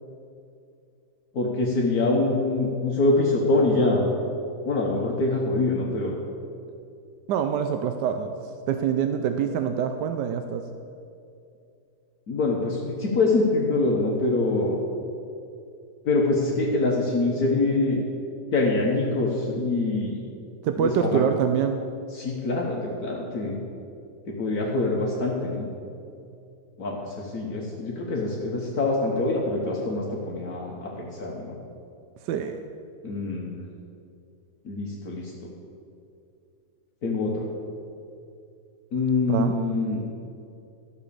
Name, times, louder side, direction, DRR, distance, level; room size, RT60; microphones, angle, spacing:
voice 1, 1.3-4.1 4.6-6.1 12.3-14.8 16.0-18.0 18.5-20.2 20.8-21.2 22.1-23.6 24.3-25.7 26.8-31.5 33.0-33.6 34.6-35.3 37.0-37.5 38.9-40.0, left 2 dB, 65° left, -2 dB, 1.7 m, -24 dB
voice 2, 7.3-10.6 20.6-21.8 32.2-32.6 39.3-39.6, right 8 dB, 85° right, 7 dB, 1.2 m, -25 dB
13.5 x 6.1 x 6.9 m, 2.6 s
omnidirectional pair, 1.8 m